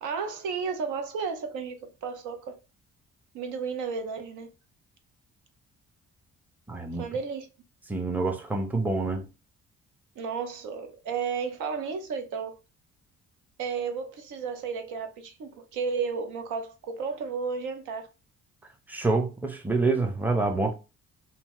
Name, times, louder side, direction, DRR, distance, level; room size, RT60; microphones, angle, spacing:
voice 1, 0.0-2.6 3.3-4.5 7.0-7.5 10.2-12.6 13.6-18.1, right 5 dB, 80° right, 0.6 m, -33 dB
voice 2, 6.7-7.1 7.9-9.3 18.9-20.7, right 3 dB, 5° right, 0.5 m, -27 dB
2.7 x 2.1 x 3.0 m
cardioid pair, 90°, 30 cm